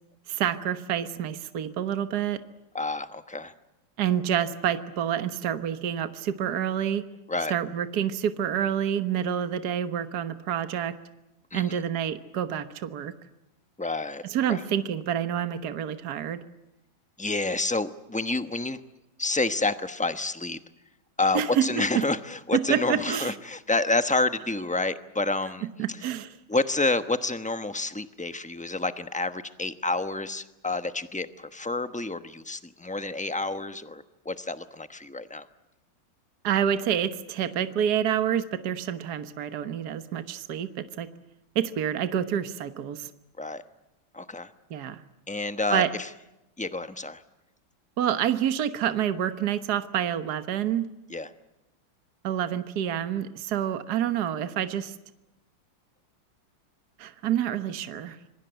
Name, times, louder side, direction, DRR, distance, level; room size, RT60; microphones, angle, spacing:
voice 1, 0.3-2.4 4.0-7.1 7.5-11.0 11.5-13.1 14.3-16.4 21.3-21.7 22.0-22.1 22.5-23.3 25.8-26.4 36.4-41.1 41.6-43.1 44.7-45.0 45.7-45.9 48.0-50.9 52.2-54.9 57.0-58.2, right 9 dB, 55° right, 10 dB, 1.7 m, -28 dB
voice 2, 2.7-3.5 7.3-7.5 11.5-11.8 13.8-14.2 14.5-14.6 17.2-18.8 19.2-20.6 21.2-25.7 26.5-35.5 43.4-43.6 44.1-44.5 45.3-46.1 46.6-47.2 51.1-51.3, left 2 dB, 5° left, 10 dB, 0.6 m, -29 dB
26.5 x 23.0 x 8.0 m, 0.94 s
omnidirectional pair, 2.1 m